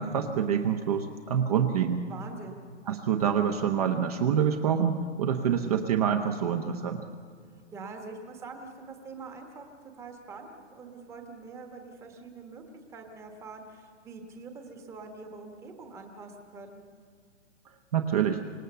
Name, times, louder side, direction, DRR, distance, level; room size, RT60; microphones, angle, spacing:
voice 1, 0.0-2.0 2.9-7.0 17.9-18.4, right 8 dB, 30° right, 6 dB, 0.9 m, -26 dB
voice 2, 2.1-2.6 7.5-9.7 9.9-12.6 12.9-16.8, right 4 dB, 10° right, 4 dB, 1.2 m, -44 dB
25.5 x 19.5 x 6.8 m, 2.2 s
hypercardioid pair, 170°, 36 cm